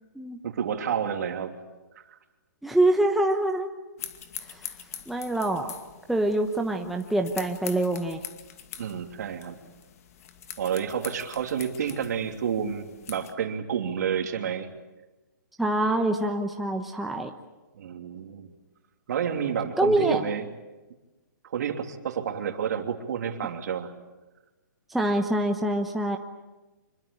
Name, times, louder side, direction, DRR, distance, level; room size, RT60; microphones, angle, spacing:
voice 1, 0.4-1.5 2.1-2.2 8.8-9.6 10.6-14.7 17.7-18.5 19.1-20.4 21.4-23.9, right 8 dB, 60° right, 5 dB, 2.9 m, -30 dB
voice 2, 2.6-3.7 4.5-4.6 5.1-5.7 6.1-8.2 15.6-17.3 19.8-20.2 24.9-26.2, right 1 dB, ahead, 2 dB, 1.0 m, -25 dB
sound 1, 4.0-13.3, left 9 dB, 50° left, 2.3 m, -43 dB
26.0 x 22.5 x 8.4 m, 1.1 s
hypercardioid pair, 155°, 11 cm